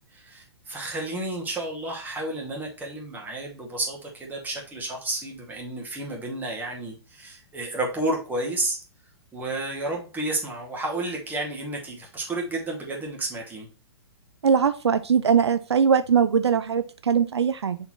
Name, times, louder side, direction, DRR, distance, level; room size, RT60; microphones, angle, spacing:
voice 1, 0.1-8.8 9.3-13.7, right 2 dB, 10° right, -1 dB, 2.3 m, -31 dB
voice 2, 14.4-17.8, right 7 dB, 75° right, 12 dB, 0.5 m, -21 dB
6.7 x 4.5 x 3.1 m, 0.36 s
figure-of-eight pair, 115°, 14 cm